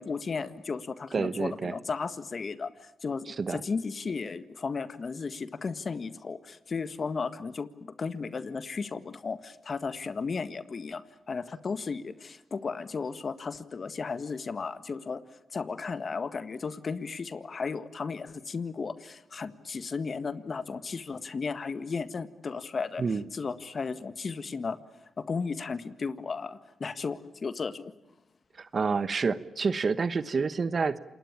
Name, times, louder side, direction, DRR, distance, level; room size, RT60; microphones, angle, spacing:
voice 1, 0.0-15.2 15.5-27.9, left 4 dB, 50° left, 13 dB, 1.7 m, -35 dB
voice 2, 1.1-1.7 3.3-3.6 23.0-23.2 28.6-31.0, right 4 dB, 50° right, 15 dB, 1.2 m, -28 dB
27.5 x 20.5 x 8.8 m, 0.90 s
supercardioid pair, 50°, 0 cm